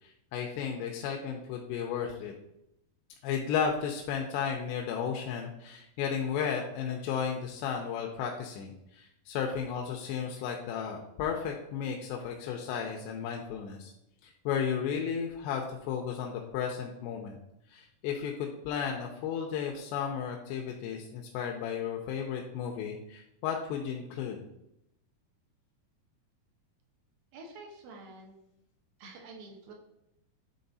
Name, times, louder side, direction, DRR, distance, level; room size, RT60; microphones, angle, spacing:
voice 1, 0.0-2.3 3.2-13.9 14.2-17.4 17.7-24.4, left 7 dB, 85° left, 1 dB, 2.7 m, -34 dB
voice 2, 27.3-28.5 29.0-29.7, right 3 dB, 65° right, 1 dB, 2.7 m, -48 dB
9.6 x 3.9 x 4.0 m, 0.82 s
omnidirectional pair, 5.0 m